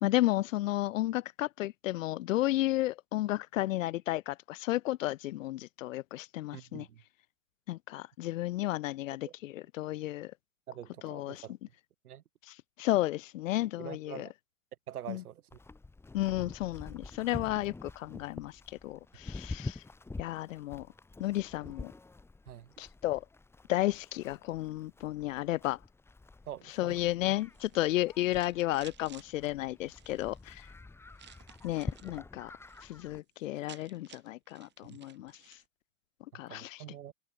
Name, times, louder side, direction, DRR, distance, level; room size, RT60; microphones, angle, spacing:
voice 1, 0.0-6.9 7.7-10.3 11.0-11.4 12.5-14.3 15.1-15.2 16.1-19.8 20.2-20.9 21.2-21.9 22.8-23.2 23.7-25.8 26.8-30.7 31.6-32.5 32.9-35.6 36.3-36.8, left 16 dB, 60° left, 0.5 m, -33 dB
voice 2, 6.5-7.0 9.2-9.3 10.7-11.5 12.0-12.2 13.8-14.3 14.9-15.4 22.5-22.7 26.5-27.0 34.9-35.0 36.5-37.1, right 11 dB, 80° right, 0.9 m, -45 dB
Livestock farm animals working animals, 15.5-33.2, left 3 dB, 5° left, 1.3 m, -47 dB
sound 1, 27.5-29.3 29.9-30.4 31.2-32.2 32.5-32.9 33.2-33.3 33.4-35.7, right 10 dB, 25° right, 5.4 m, -56 dB
hypercardioid pair, 115°, 44 cm